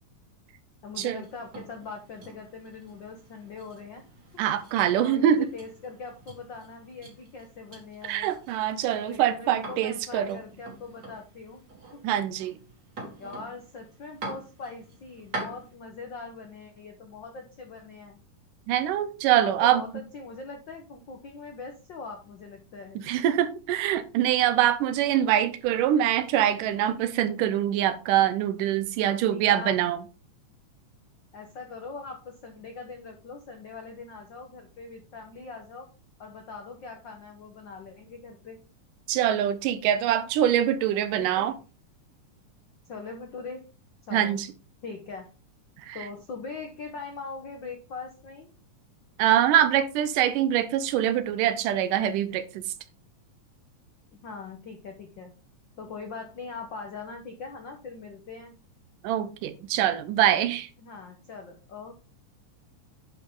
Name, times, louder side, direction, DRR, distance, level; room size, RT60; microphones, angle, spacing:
voice 1, 0.8-4.0 4.9-8.3 9.0-11.6 11.9-12.0 13.2-18.2 19.4-23.0 29.0-29.8 31.3-35.9 36.2-38.6 41.2-41.5 42.9-43.7 44.1-44.4 44.8-45.3 45.9-48.5 54.1-55.3 55.8-58.5 60.8-61.9, left 4 dB, 70° left, 1.0 m, -41 dB
sound 1, 1.1-15.7, right 2 dB, 35° right, 3.1 m, -45 dB
voice 2, 4.4-5.5 8.0-10.4 12.0-12.6 18.7-19.8 23.0-30.0 39.1-41.5 44.1-44.5 45.9-46.0 49.2-52.6 59.0-60.7, right 11 dB, 80° right, 2.3 m, -24 dB
10.0 x 5.5 x 3.7 m
omnidirectional pair, 3.7 m